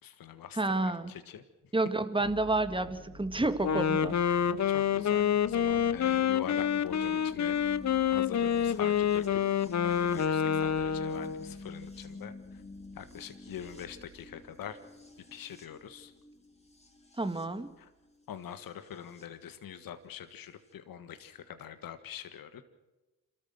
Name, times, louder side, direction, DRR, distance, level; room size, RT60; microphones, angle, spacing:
voice 1, 0.0-1.4 4.7-7.6 8.1-9.4 9.8-12.6 12.9-14.8 15.3-16.1 17.8-17.9 18.3-22.6, left 9 dB, 65° left, 10 dB, 1.6 m, -44 dB
voice 2, 0.5-1.1 1.7-4.2 17.2-17.7, right 2 dB, 15° right, 11 dB, 1.9 m, -30 dB
sound 1, 2.2-19.2 20.4-20.5, left 2 dB, 15° left, 3.6 m, -48 dB
Wind instrument woodwind instrument, 3.6-11.5, left 8 dB, 45° left, 1.0 m, -28 dB
27.0 x 14.0 x 7.8 m, 1.1 s
hypercardioid pair, 50°, 38 cm